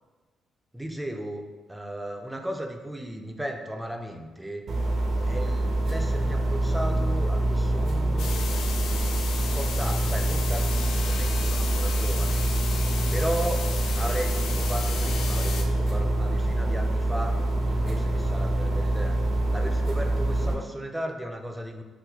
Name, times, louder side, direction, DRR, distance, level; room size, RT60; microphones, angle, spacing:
voice 1, 0.7-4.6 5.3-8.4 9.4-12.4 13.1-13.7 14.0-17.4 17.7-21.8, right 1 dB, 10° right, 4 dB, 0.3 m, -35 dB
sound 1, 4.7-20.5, right 1 dB, 55° right, 0.6 m, -25 dB
sound 2, 8.2-15.6, left 6 dB, 80° left, 0.3 m, -35 dB
3.8 x 2.2 x 2.8 m, 1.3 s
cardioid pair, 90°, 0 cm